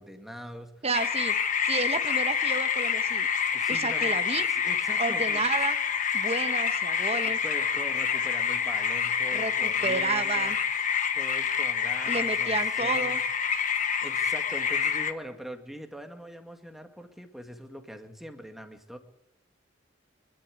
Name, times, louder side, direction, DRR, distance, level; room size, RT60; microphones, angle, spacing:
voice 1, 0.0-0.8 3.5-4.2 4.6-5.4 7.1-10.5 11.1-12.5 12.8-13.1 14.0-19.0, equal, ahead, 5 dB, 2.0 m, -42 dB
voice 2, 0.8-1.3 1.6-3.3 3.7-4.5 5.0-5.8 6.1-7.4 9.3-10.6 12.1-13.2, right 4 dB, 35° right, 10 dB, 1.2 m, -31 dB
sound 1, 0.9-15.1, left 7 dB, 40° left, 1.4 m, -27 dB
26.0 x 12.0 x 9.3 m, 0.85 s
head